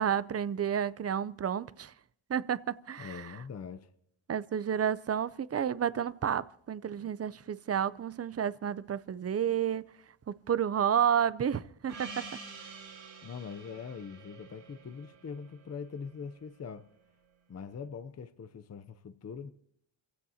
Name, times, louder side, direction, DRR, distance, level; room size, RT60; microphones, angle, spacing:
voice 1, 0.0-1.9 2.3-3.3 4.3-9.9 10.3-12.3, right 8 dB, 35° right, 0.5 m, -31 dB
voice 2, 3.0-3.9 13.2-16.9 17.5-19.5, left 6 dB, 35° left, 0.7 m, -42 dB
Gong, 11.9-16.7, right 4 dB, 65° right, 4.4 m, -49 dB
28.5 x 16.0 x 2.8 m
wide cardioid pair, 115°, 45 cm